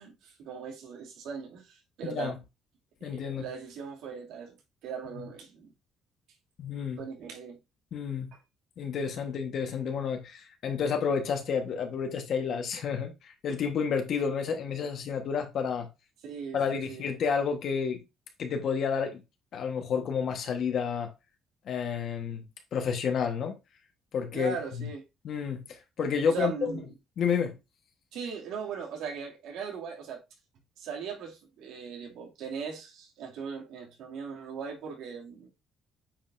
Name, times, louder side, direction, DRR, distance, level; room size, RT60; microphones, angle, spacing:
voice 1, 0.0-2.4 3.0-4.6 4.8-5.7 7.0-7.6 8.3-8.4 16.2-17.1 24.3-25.0 26.3-26.9 28.1-30.2 30.8-35.5, right 6 dB, 80° right, 2.4 m, -39 dB
voice 2, 2.0-2.4 3.0-3.4 6.6-7.0 7.9-8.3 8.8-15.9 16.5-18.0 18.4-19.2 19.5-21.1 21.7-22.4 22.7-23.6 24.1-24.9 25.2-26.8 27.2-27.6, left 6 dB, 50° left, 1.2 m, -30 dB
9.0 x 5.0 x 2.6 m
cardioid pair, 150°, 0 cm